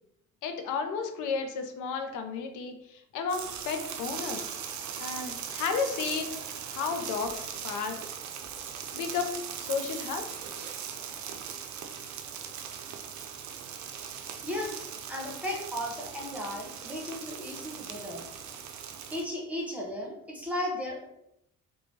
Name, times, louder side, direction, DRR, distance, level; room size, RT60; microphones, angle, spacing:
voice 1, 0.4-4.5 5.0-6.4 6.7-8.0 8.9-10.3, left 5 dB, 85° left, 6 dB, 0.5 m, -33 dB
sound 1, 3.3-19.2, right 8 dB, 70° right, 0.4 m, -39 dB
voice 2, 14.4-18.2 19.1-21.0, left 1 dB, 5° right, -2 dB, 0.8 m, -35 dB
3.0 x 2.2 x 2.7 m, 0.80 s
cardioid pair, 90°, 30 cm